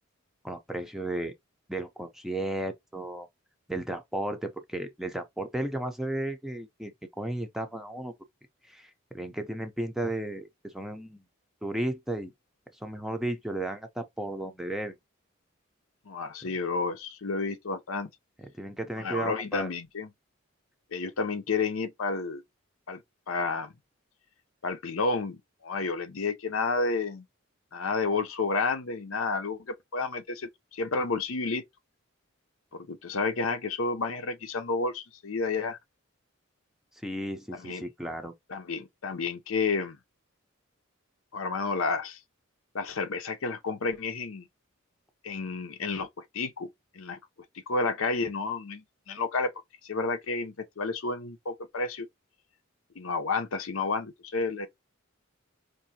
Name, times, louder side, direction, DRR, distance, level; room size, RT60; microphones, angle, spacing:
voice 1, 0.4-1.3 1.7-3.3 3.7-8.1 8.6-11.2 11.6-12.3 12.8-15.0 16.4-16.5 18.6-19.7 36.9-38.3, right 1 dB, ahead, 0.6 m, -34 dB
voice 2, 16.1-18.1 19.0-20.1 20.9-22.4 22.9-23.7 24.6-27.2 27.7-31.6 32.7-35.8 37.5-37.8 38.5-40.0 41.3-42.2 42.7-44.5 45.2-46.7 46.9-47.2 47.7-49.5 49.8-52.1 53.0-54.7, left 4 dB, 80° left, 0.7 m, -31 dB
4.7 x 2.6 x 2.8 m
head